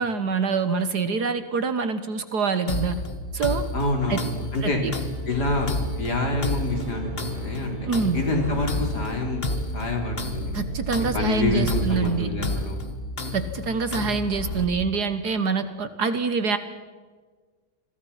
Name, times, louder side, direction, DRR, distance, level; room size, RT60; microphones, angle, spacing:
voice 1, 0.0-3.0 3.3-3.6 4.1-4.2 4.6-4.9 7.9-8.2 10.5-12.3 13.3-16.6, right 5 dB, 60° right, 11 dB, 1.6 m, -25 dB
sound 1, 2.7-14.6, left 2 dB, 30° left, 1.7 m, -31 dB
voice 2, 3.7-4.8 5.3-5.7 6.0-7.8 8.1-9.4 9.7-10.5 11.1-12.8, left 2 dB, 55° left, 2 dB, 4.5 m, -27 dB
sound 2, 3.9-12.2, right 3 dB, 90° right, 4.1 m, -37 dB
28.5 x 22.0 x 5.8 m, 1.4 s
omnidirectional pair, 2.2 m